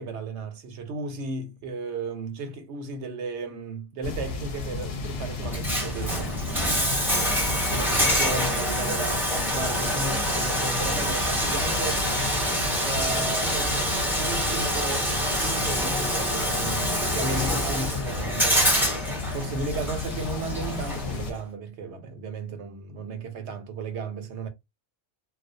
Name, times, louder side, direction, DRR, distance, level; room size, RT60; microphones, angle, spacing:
voice 1, 0.0-6.3 7.7-12.0 12.8-15.1 15.4-18.7 19.3-24.5, right 3 dB, 80° right, 1.0 m, -34 dB
sound 1, 4.0-21.3, left 3 dB, 70° left, 0.8 m, -34 dB
Bathtub (filling or washing), 5.4-21.4, equal, ahead, 0.6 m, -26 dB
2.3 x 2.1 x 2.6 m
omnidirectional pair, 1.2 m